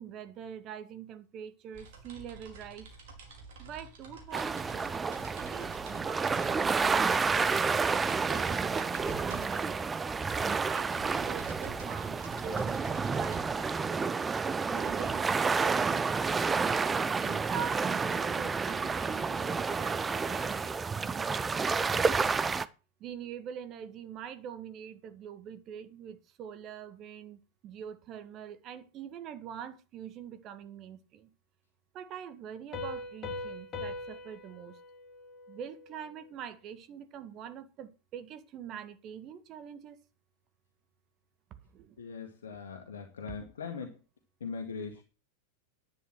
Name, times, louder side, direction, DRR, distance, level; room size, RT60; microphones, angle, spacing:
voice 1, 0.0-2.9 3.6-9.9 10.5-14.1 14.6-16.8 17.2-22.5 23.0-31.3 31.9-34.8 35.5-40.0 41.7-42.0, right 8 dB, 35° right, 1.8 m, -44 dB
sound 1, 1.7-15.5, right 3 dB, 50° right, 4.8 m, -50 dB
sound 2, 4.3-22.7, right 5 dB, 15° right, 0.7 m, -30 dB
Piano, 32.7-36.2, left 2 dB, 25° left, 3.7 m, -41 dB
voice 2, 42.0-43.9 44.4-45.0, left 5 dB, 65° left, 2.0 m, -40 dB
11.0 x 9.6 x 6.2 m
figure-of-eight pair, 90°, 0 cm